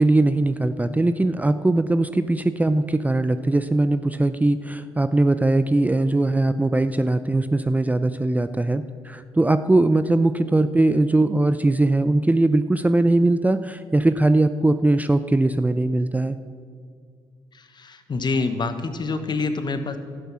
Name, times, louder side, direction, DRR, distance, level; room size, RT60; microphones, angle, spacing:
voice 1, 0.0-16.4, right 2 dB, 15° right, 11 dB, 0.5 m, -20 dB
voice 2, 17.5-20.0, left 3 dB, 45° left, 9 dB, 1.2 m, -26 dB
11.5 x 9.9 x 6.2 m, 2.1 s
supercardioid pair, 55°, 11 cm